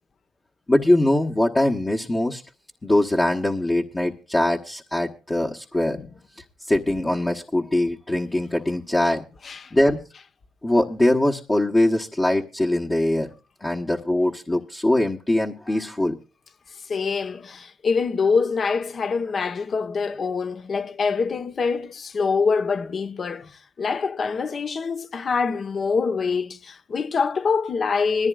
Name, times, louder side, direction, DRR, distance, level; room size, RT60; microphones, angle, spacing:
voice 1, 0.7-2.4 2.8-6.0 6.6-9.2 9.7-10.0 10.6-13.3 13.6-16.2, left 1 dB, 20° left, 1.2 m, -22 dB
voice 2, 16.9-28.3, left 5 dB, 45° left, 1.2 m, -25 dB
20.5 x 14.5 x 2.4 m
cardioid pair, 90°, 0 cm